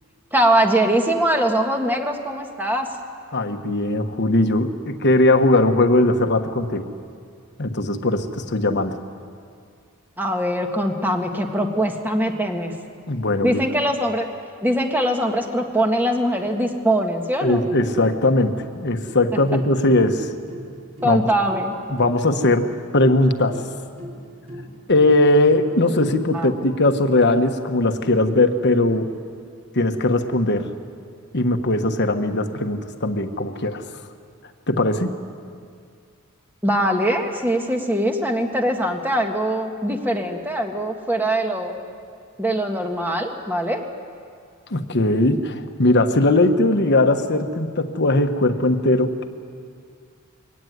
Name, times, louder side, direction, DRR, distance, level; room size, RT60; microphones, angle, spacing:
voice 1, 0.3-2.9 10.2-12.7 13.4-14.3 14.6-17.6 21.0-21.7 26.3-26.5 36.6-41.8 42.4-43.8, right 1 dB, 10° right, 3 dB, 1.8 m, -22 dB
voice 2, 3.3-6.9 7.6-8.9 13.1-13.6 17.4-20.3 21.0-21.3 21.9-23.6 24.9-29.1 29.7-30.7 31.3-33.8 34.7-35.1 44.7-49.2, left 2 dB, 50° left, 7 dB, 1.4 m, -19 dB
sound 1, 19.1-26.4, equal, 40° right, 4.0 m, -39 dB
23.0 x 17.5 x 9.6 m, 2.2 s
head